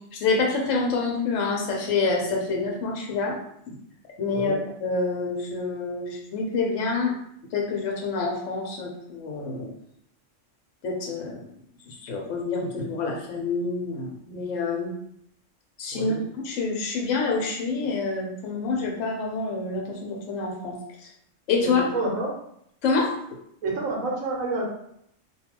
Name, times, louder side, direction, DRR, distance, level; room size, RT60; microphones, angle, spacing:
voice 1, 0.1-3.4 3.7-3.8 4.2-4.6 4.8-7.1 7.5-9.7 10.8-11.5 11.9-14.9 15.8-16.2 16.4-21.1 21.5-21.9 22.8-23.1, left 4 dB, 75° left, 0 dB, 1.0 m, -27 dB
voice 2, 21.6-22.3 23.6-24.6, right 2 dB, 85° right, -2 dB, 1.1 m, -28 dB
2.5 x 2.3 x 2.8 m, 0.72 s
omnidirectional pair, 1.3 m